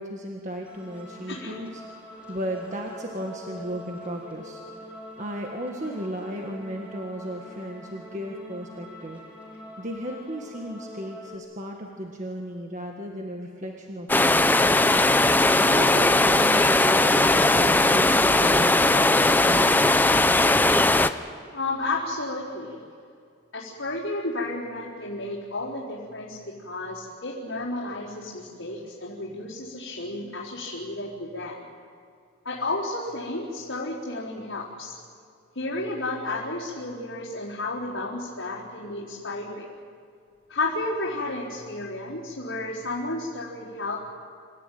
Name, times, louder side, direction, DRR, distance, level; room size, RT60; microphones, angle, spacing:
voice 1, 0.0-1.8 2.3-4.6 5.2-9.2 9.8-14.8 15.5-19.8, equal, 35° right, 1 dB, 1.7 m, -35 dB
sound 1, 0.6-11.4, left 1 dB, 5° right, 3.4 m, -44 dB
sound 2, 14.1-21.1, left 2 dB, 10° left, 0.5 m, -19 dB
voice 2, 21.5-22.8 23.5-26.4 26.6-31.6 32.4-34.9 35.5-39.6 40.5-44.0, left 2 dB, 75° left, -8 dB, 4.1 m, -32 dB
27.0 x 14.5 x 9.3 m, 2.3 s
head